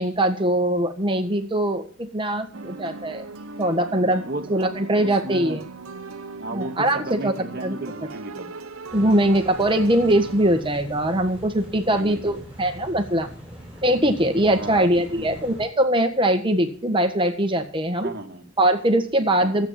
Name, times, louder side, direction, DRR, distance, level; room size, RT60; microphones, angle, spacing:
voice 1, 0.0-3.3 3.6-4.2 4.5-5.6 6.5-7.3 7.6-7.8 8.9-13.3 13.8-18.1 18.6-19.7, right 1 dB, 25° right, 7 dB, 1.5 m, -21 dB
sound 1, 2.5-10.6, right 3 dB, 90° right, 0.9 m, -39 dB
voice 2, 4.2-5.7 6.4-8.6 11.9-12.4 14.5-15.4 18.0-18.4 19.4-19.6, right 2 dB, 50° right, 2 dB, 1.6 m, -34 dB
sound 2, 8.9-15.7, right 1 dB, 5° right, 7.0 m, -42 dB
13.5 x 8.6 x 7.5 m, 0.44 s
head